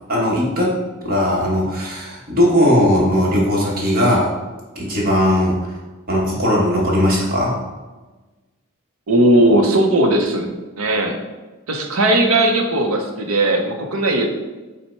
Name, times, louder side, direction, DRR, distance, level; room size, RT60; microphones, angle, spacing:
voice 1, 0.1-0.8 1.0-4.3 4.7-5.6 6.1-7.5, equal, 45° right, -4 dB, 1.2 m, -18 dB
voice 2, 9.1-10.5 10.8-11.2 11.7-14.3, right 1 dB, 75° right, 4 dB, 0.7 m, -17 dB
5.5 x 2.1 x 4.4 m, 1.2 s
head